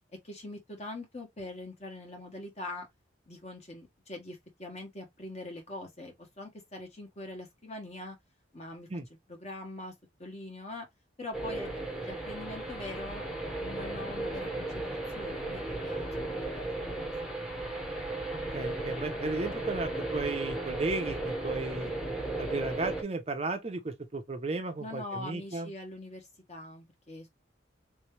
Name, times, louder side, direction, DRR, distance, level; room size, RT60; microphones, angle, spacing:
voice 1, 0.2-2.9 3.3-8.2 8.5-8.9 9.3-9.9 10.2-10.9 11.2-13.2 13.6-17.3 24.8-27.3, left 2 dB, 35° left, 1.4 m, -43 dB
sound 1, 11.3-23.0, right 2 dB, 5° right, 0.8 m, -35 dB
voice 2, 18.5-21.9 22.4-25.7, right 3 dB, 30° right, 0.6 m, -34 dB
3.4 x 3.1 x 3.1 m
head